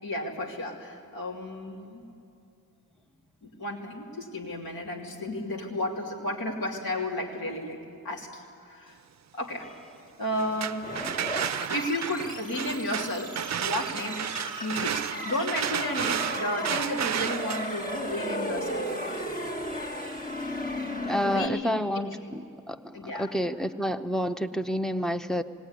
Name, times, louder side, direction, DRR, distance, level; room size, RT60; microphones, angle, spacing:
voice 1, 0.0-2.0 3.4-7.8 8.0-9.0 9.3-9.7 10.2-10.9 11.7-14.3 14.6-19.2 21.2-22.0 22.9-23.4, left 1 dB, 85° left, -2 dB, 3.0 m, -33 dB
sound 1, 10.3-20.2, right 9 dB, 50° right, 0.4 m, -34 dB
sound 2, 10.8-21.5, left 1 dB, 25° left, 1.5 m, -35 dB
voice 2, 21.1-22.4 22.7-25.4, equal, ahead, 9 dB, 0.6 m, -29 dB
19.0 x 18.5 x 9.8 m, 2.6 s
wide cardioid pair, 90°, 35 cm